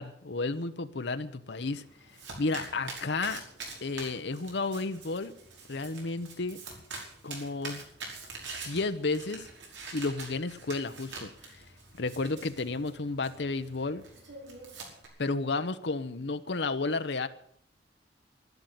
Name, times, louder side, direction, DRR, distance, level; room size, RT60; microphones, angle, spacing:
voice 1, 0.0-1.8 2.4-3.4 3.8-5.3 5.7-6.6 7.2-7.8 8.7-9.5 9.9-11.6 12.0-14.0 15.2-17.3, left 3 dB, 70° left, 10 dB, 0.9 m, -32 dB
Domestic sounds home sounds, 1.5-15.1, right 3 dB, 85° right, 5.3 m, -45 dB
12.0 x 12.0 x 9.1 m, 0.65 s
head